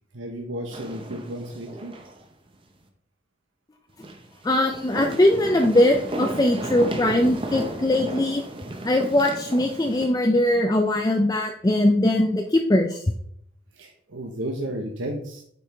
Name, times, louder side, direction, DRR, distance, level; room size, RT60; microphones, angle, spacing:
voice 1, 0.1-1.9 13.7-15.4, right 1 dB, 85° right, 2 dB, 0.9 m, -33 dB
sound 1, 0.7-2.2 2.5-2.6 4.0-10.1, right 1 dB, 25° right, 0.7 m, -34 dB
voice 2, 4.4-8.4 8.8-13.0, left 1 dB, 20° left, 3 dB, 0.4 m, -21 dB
8.1 x 4.7 x 3.4 m, 0.68 s
head